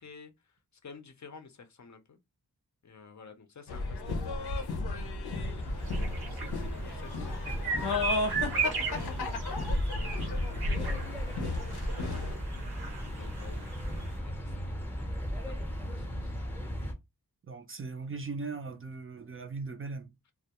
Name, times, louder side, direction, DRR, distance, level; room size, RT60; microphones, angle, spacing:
voice 1, 0.0-2.2 2.8-5.5 6.0-9.3 9.9-11.4 11.7-12.5 13.1-15.1 15.4-16.3, left 5 dB, 50° left, 0.5 m, -52 dB
sound 1, 3.7-12.3, left 3 dB, 90° left, 0.6 m, -34 dB
sound 2, 5.4-16.9, equal, 5° left, 0.6 m, -37 dB
sound 3, 5.8-14.2, right 5 dB, 75° right, 0.7 m, -37 dB
voice 2, 17.5-20.1, right 4 dB, 35° right, 0.4 m, -39 dB
2.2 x 2.0 x 2.8 m
wide cardioid pair, 65°, 38 cm